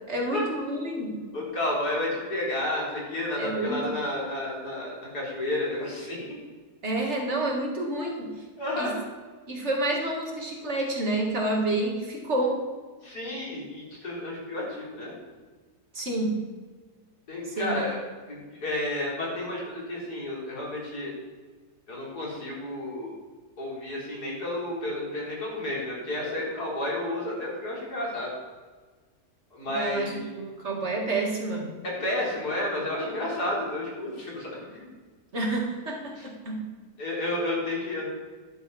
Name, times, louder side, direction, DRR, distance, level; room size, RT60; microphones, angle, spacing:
voice 1, 0.0-1.2 3.4-3.8 6.8-8.3 8.8-8.9 9.5-12.7 15.9-16.4 17.5-17.8 29.7-31.7 35.3-36.6, right 2 dB, 45° right, 0 dB, 2.1 m, -29 dB
voice 2, 1.3-6.3 8.6-8.9 13.0-15.1 17.3-18.0 18.3-21.1 21.9-23.1 23.6-28.3 29.5-30.2 31.8-34.8 36.2-36.3 37.0-38.2, left 1 dB, 75° left, -4 dB, 4.3 m, -31 dB
12.5 x 11.0 x 4.1 m, 1.4 s
omnidirectional pair, 1.7 m